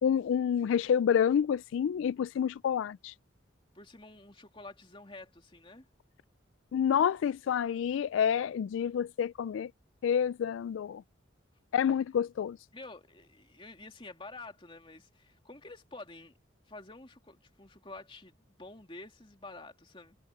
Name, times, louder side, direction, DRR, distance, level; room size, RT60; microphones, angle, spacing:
voice 1, 0.0-3.1 6.7-9.7 10.0-11.0 11.7-12.6, left 8 dB, 85° left, 0.3 m, -28 dB
voice 2, 3.7-5.9 12.7-16.4 16.7-20.2, left 2 dB, 25° left, 3.1 m, -49 dB
head